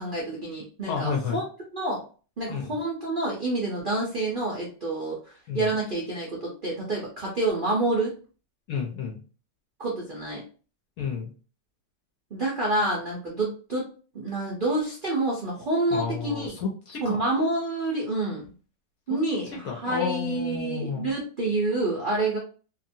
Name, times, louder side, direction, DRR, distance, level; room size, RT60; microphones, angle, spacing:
voice 1, 0.0-1.4 1.7-2.0 2.4-8.2 9.8-10.4 12.3-13.9 14.1-16.5 17.0-18.5 19.1-22.4, right 2 dB, 55° right, -4 dB, 0.5 m, -28 dB
voice 2, 0.9-1.4 2.5-2.8 5.5-5.7 8.7-9.2 11.0-11.3 15.9-17.2 19.1-19.2 19.6-21.1, left 6 dB, 65° left, 0 dB, 0.9 m, -31 dB
2.8 x 2.5 x 2.6 m, 0.38 s
omnidirectional pair, 2.0 m